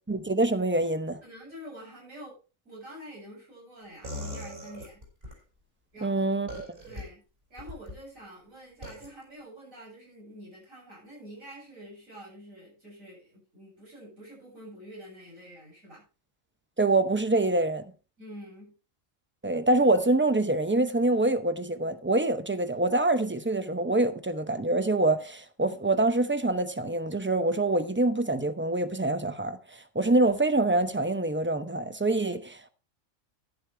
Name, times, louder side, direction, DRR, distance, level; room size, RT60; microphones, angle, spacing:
voice 1, 0.1-1.2 6.0-6.7 16.8-17.8 19.4-29.6 29.9-32.7, right 2 dB, 15° right, 0.5 m, -25 dB
voice 2, 1.2-2.4 2.6-5.0 5.9-6.4 6.8-7.2 7.5-16.0 18.2-18.7, equal, 90° right, 8.3 m, -47 dB
sound 1, 4.0-5.4 6.5-7.0 7.6-8.0 8.8-9.1, left 1 dB, 45° right, 5.8 m, -39 dB
11.5 x 11.0 x 3.4 m
omnidirectional pair, 1.3 m